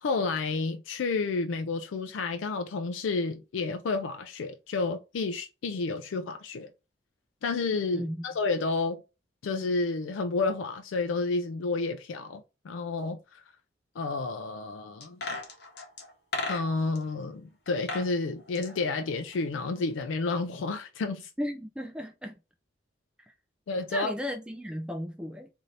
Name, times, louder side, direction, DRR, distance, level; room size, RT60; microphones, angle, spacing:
voice 1, 0.0-6.7 7.4-9.0 9.4-13.4 14.0-15.2 16.5-21.3 23.7-24.1, left 3 dB, 85° left, 0.4 m, -30 dB
sound 1, 15.0-17.0 17.7-18.1 18.4-19.8 20.0-20.1, left 3 dB, 60° left, 0.9 m, -36 dB
voice 2, 21.4-22.4 23.9-25.5, equal, 5° right, 0.3 m, -35 dB
2.7 x 2.6 x 3.1 m
head